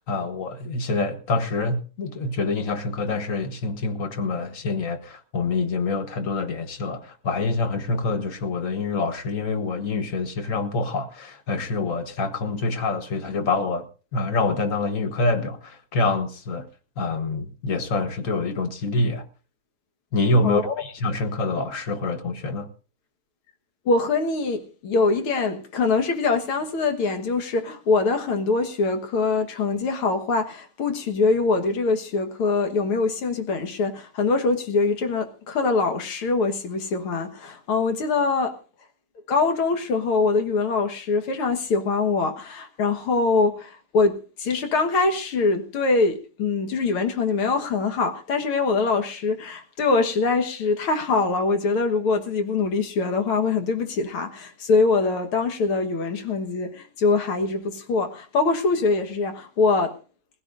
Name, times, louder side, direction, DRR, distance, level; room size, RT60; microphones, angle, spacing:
voice 1, 0.0-13.8 14.1-16.7 17.0-19.3 20.1-22.7, left 3 dB, 45° left, 1.4 m, -26 dB
voice 2, 20.4-20.7 23.9-38.6 39.3-60.0, left 4 dB, 75° left, 2.3 m, -23 dB
21.0 x 16.0 x 2.5 m
omnidirectional pair, 2.4 m